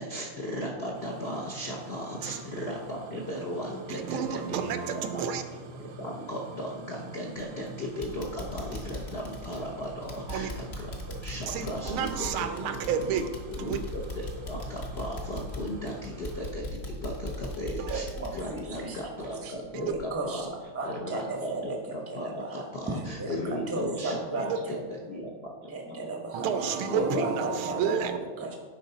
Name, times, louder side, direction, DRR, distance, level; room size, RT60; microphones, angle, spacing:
voice 1, 0.0-4.6 4.9-5.2 5.8-12.1 12.4-12.5 13.6-20.4 20.8-25.5 25.9-26.0 26.9-27.3 27.7-28.0 28.3-28.4, equal, 60° left, -2 dB, 0.6 m, -36 dB
sound 1, 0.9-16.5, right 3 dB, 70° right, 0.7 m, -47 dB
voice 2, 3.9-5.4 10.3-10.5 11.5-13.3 13.6-13.8 17.8-18.0 19.7-19.9 24.4-24.6 26.3-28.2, right 7 dB, 85° right, 9 dB, 1.5 m, -30 dB
sound 2, 7.3-7.7 8.0-19.6 19.9-20.0 20.5-20.6, left 2 dB, 45° left, 0.9 m, -39 dB
voice 3, 17.9-19.1 19.4-19.5 19.8-21.8 22.1-24.8 25.7-28.5, right 2 dB, 15° right, 1 dB, 0.5 m, -35 dB
10.5 x 4.7 x 4.0 m, 1.5 s
omnidirectional pair, 2.3 m